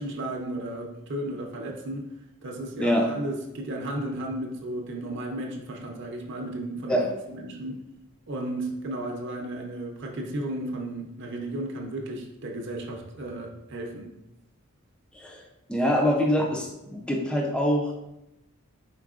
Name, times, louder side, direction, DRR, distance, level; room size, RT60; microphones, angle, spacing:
voice 1, 0.0-2.1 2.4-7.8 8.3-14.1, right 1 dB, 55° right, 1 dB, 0.6 m, -34 dB
voice 2, 15.7-18.0, equal, 5° left, 0 dB, 0.4 m, -24 dB
4.5 x 4.0 x 2.4 m, 0.89 s
head